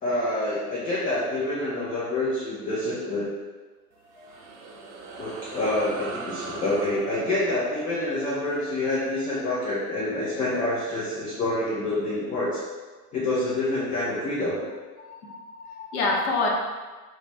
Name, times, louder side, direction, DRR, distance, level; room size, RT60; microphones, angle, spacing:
voice 1, 0.0-3.3 5.2-12.6 13.1-14.6, left 2 dB, 20° left, -7 dB, 0.4 m, -27 dB
sound 1, 3.9-10.7, right 3 dB, 65° right, 0.6 m, -40 dB
voice 2, 15.0-16.5, left 3 dB, 50° left, -1 dB, 0.7 m, -28 dB
2.4 x 2.1 x 3.1 m, 1.3 s
figure-of-eight pair, 85°, 46 cm